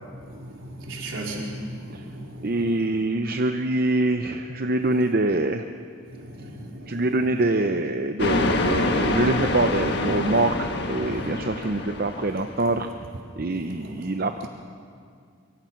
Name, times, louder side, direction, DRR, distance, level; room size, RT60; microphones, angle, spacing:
voice 1, 0.3-2.9 6.1-7.4 11.1-11.2 13.5-14.0 14.4-14.5, right 1 dB, 65° right, -2 dB, 4.3 m, -37 dB
voice 2, 2.4-5.6 6.9-12.9 13.4-14.5, right 2 dB, 45° right, 7 dB, 0.7 m, -24 dB
sound 1, 8.2-12.7, left 2 dB, 55° left, 1.6 m, -26 dB
24.0 x 24.0 x 5.9 m, 2.3 s
head